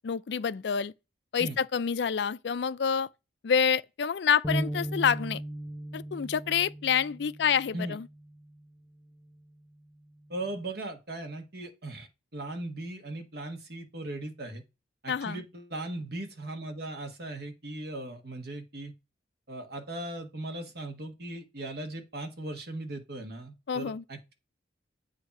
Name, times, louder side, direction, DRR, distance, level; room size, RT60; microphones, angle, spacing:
voice 1, 0.0-0.9 1.3-3.1 3.4-5.4 5.9-8.1 15.1-15.4 23.7-24.0, left 7 dB, 65° left, 0.4 m, -27 dB
sound 1, 4.4-8.7 9.2-9.4 10.3-10.7, right 1 dB, 10° left, 0.8 m, -39 dB
voice 2, 10.3-14.6 15.0-18.9 19.5-24.3, right 2 dB, 55° right, 1.6 m, -38 dB
8.2 x 2.8 x 6.0 m
head